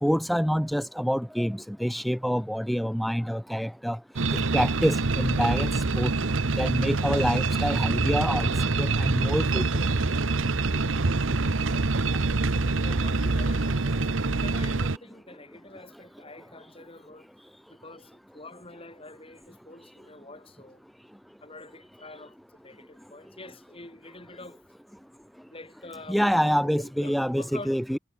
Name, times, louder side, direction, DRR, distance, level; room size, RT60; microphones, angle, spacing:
voice 1, 0.0-4.0 4.3-6.1 6.6-9.7 26.1-28.0, equal, ahead, 0.9 m, -26 dB
sound 1, 4.2-15.0, right 3 dB, 75° right, 1.0 m, -25 dB
voice 2, 12.6-17.3 17.7-20.8 21.4-24.6 25.5-27.8, left 2 dB, 25° left, 7.2 m, -46 dB
head